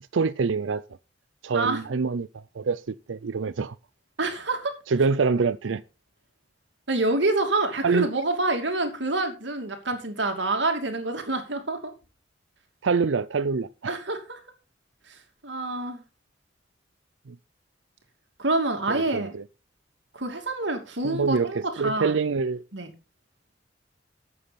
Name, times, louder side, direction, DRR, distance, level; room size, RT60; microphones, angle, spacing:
voice 1, 0.1-0.8 1.4-3.7 4.9-5.8 7.8-8.1 12.8-14.0 17.3-17.4 18.9-19.4 21.0-22.6, right 4 dB, 85° right, 0.5 m, -25 dB
voice 2, 4.2-4.7 6.9-11.9 13.9-14.4 15.1-15.2 15.4-16.0 18.4-19.3 20.1-22.1 22.7-22.9, right 2 dB, 70° right, 2.7 m, -27 dB
13.0 x 8.4 x 4.2 m
head